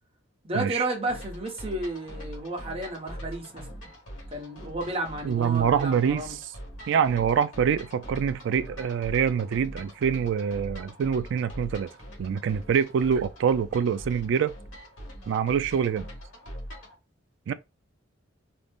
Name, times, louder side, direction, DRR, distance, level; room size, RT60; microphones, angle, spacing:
voice 1, 0.4-3.9 4.3-6.4, right 2 dB, 30° right, 0.9 m, -32 dB
sound 1, 1.1-17.0, equal, 85° left, 1.1 m, -42 dB
voice 2, 5.2-6.5 6.9-11.9 12.2-14.5 15.3-16.1 17.5-17.6, right 7 dB, 65° right, 0.3 m, -25 dB
2.5 x 2.0 x 3.4 m
head